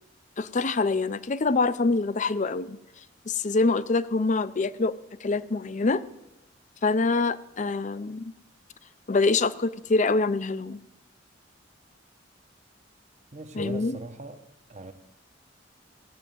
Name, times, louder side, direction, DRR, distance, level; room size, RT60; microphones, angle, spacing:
voice 1, 0.4-2.8 3.3-4.9 5.2-6.0 6.8-8.3 9.1-10.8 13.6-14.0, left 3 dB, 40° left, 0.6 m, -25 dB
voice 2, 13.3-14.9, right 2 dB, 40° right, 1.0 m, -41 dB
16.5 x 7.3 x 9.1 m
head